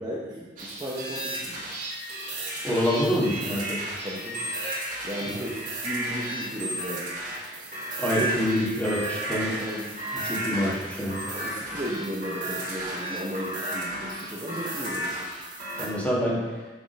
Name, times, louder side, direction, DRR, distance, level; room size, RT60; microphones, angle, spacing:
voice 1, 0.0-1.6 4.0-4.5 5.0-7.1 9.6-9.8 11.3-15.2, equal, 25° right, -5 dB, 0.8 m, -35 dB
sound 1, 0.6-15.9, right 1 dB, 50° right, 2.0 m, -33 dB
voice 2, 2.6-3.8 5.3-5.4 8.0-9.5 10.1-11.2 15.8-16.4, equal, 10° left, -7 dB, 1.5 m, -26 dB
6.3 x 3.7 x 5.1 m, 1.3 s
head